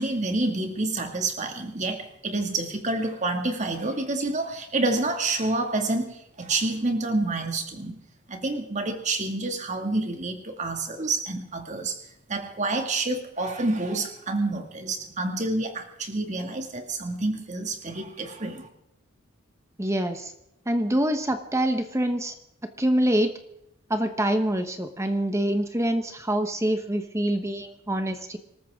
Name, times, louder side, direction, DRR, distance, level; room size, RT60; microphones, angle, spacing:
voice 1, 0.0-8.0 8.3-12.0 12.3-18.7, right 2 dB, 35° right, 5 dB, 2.2 m, -28 dB
voice 2, 19.8-20.3 20.7-22.3 22.8-23.3 23.9-28.4, right 1 dB, 15° right, 7 dB, 1.1 m, -25 dB
26.0 x 14.0 x 3.7 m, 0.80 s
head